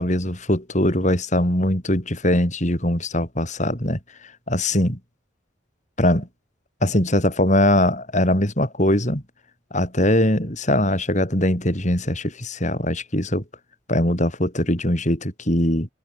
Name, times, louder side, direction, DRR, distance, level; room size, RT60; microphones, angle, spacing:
voice 1, 0.0-4.0 4.5-5.0 6.0-6.3 6.8-9.2 9.7-13.4 13.9-15.9, left 1 dB, 35° left, 6.9 m, -21 dB
head